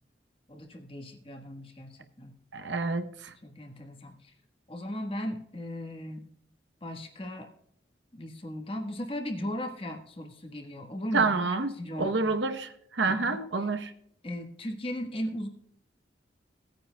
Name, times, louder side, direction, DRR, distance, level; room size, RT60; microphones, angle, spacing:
voice 1, 0.5-2.3 3.4-4.3 4.7-6.3 6.8-7.5 8.1-12.3 13.1-13.4 14.2-15.5, left 1 dB, 30° left, 1.4 m, -37 dB
voice 2, 2.5-3.3 11.1-13.9, right 3 dB, 85° right, 0.9 m, -28 dB
18.5 x 9.3 x 2.3 m
head